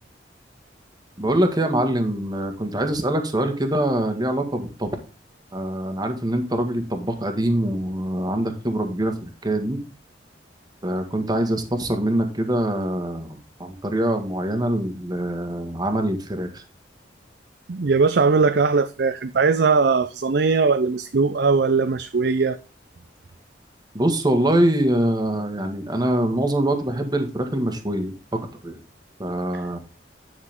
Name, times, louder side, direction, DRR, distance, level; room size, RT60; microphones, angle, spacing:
voice 1, 1.2-5.0 5.5-9.8 10.8-16.6 23.9-28.8 29.2-29.8, right 1 dB, 20° right, 1.7 m, -24 dB
voice 2, 17.7-22.6, right 4 dB, 65° right, 0.6 m, -20 dB
10.5 x 6.1 x 3.6 m
head